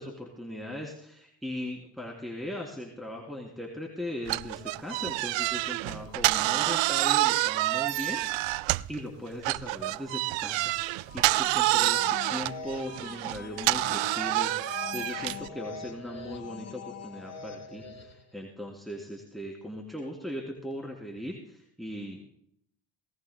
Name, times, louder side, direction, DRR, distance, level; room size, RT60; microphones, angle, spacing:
voice 1, 0.0-10.8 11.1-22.3, left 1 dB, ahead, -2 dB, 3.1 m, -39 dB
sound 1, 4.3-9.0 9.4-15.5, right 19 dB, 75° right, 0.5 m, -27 dB
sound 2, 10.9-18.3, left 6 dB, 35° left, 1.8 m, -42 dB
19.5 x 19.0 x 2.2 m, 0.67 s
cardioid pair, 95°, 45 cm